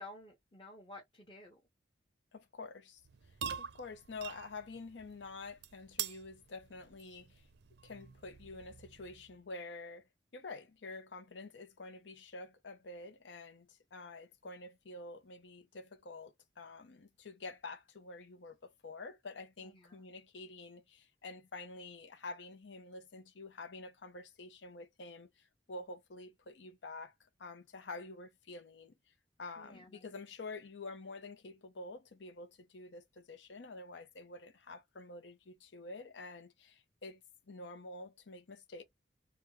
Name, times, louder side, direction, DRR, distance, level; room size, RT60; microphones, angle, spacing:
voice 1, 0.0-1.6 19.6-20.1 29.6-30.1, left 2 dB, 25° left, 0.9 m, -53 dB
voice 2, 2.3-3.0 3.6-7.5 7.8-10.0 10.3-27.1 27.4-28.9 29.4-37.2 37.5-38.8, left 3 dB, 85° left, 0.7 m, -48 dB
sound 1, 3.0-9.4, right 9 dB, 70° right, 0.5 m, -46 dB
3.4 x 2.3 x 3.1 m
head